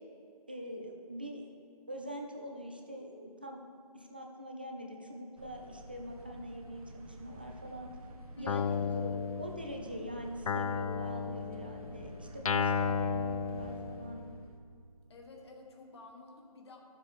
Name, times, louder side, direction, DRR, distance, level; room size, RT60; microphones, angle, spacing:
voice 1, 0.5-1.5 1.9-3.7 3.9-7.9 8.4-14.2, equal, 15° right, 2 dB, 0.4 m, -44 dB
sound 1, 5.4-14.6, right 1 dB, 65° right, 1.3 m, -49 dB
voice 2, 8.3-9.1 15.1-16.8, left 2 dB, 45° left, 1 dB, 1.5 m, -51 dB
Guitar, 8.5-10.0 10.5-14.3, left 6 dB, 60° left, 0.4 m, -34 dB
13.0 x 7.2 x 3.6 m, 2.3 s
hypercardioid pair, 170°, 20 cm